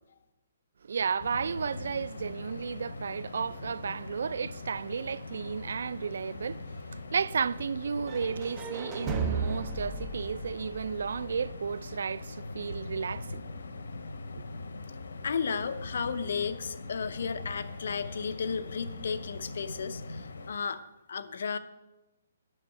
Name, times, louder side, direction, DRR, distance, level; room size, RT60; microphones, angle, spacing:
voice 1, 0.8-6.6 6.9-13.4, right 6 dB, 70° right, 0.4 m, -33 dB
sound 1, 1.2-20.5, left 3 dB, 90° left, 1.0 m, -42 dB
sound 2, 8.1-12.0, right 5 dB, 20° right, 1.0 m, -36 dB
voice 2, 15.2-20.8 21.1-21.6, left 6 dB, 65° left, 0.6 m, -33 dB
10.0 x 6.2 x 7.0 m
hypercardioid pair, 165°, 0 cm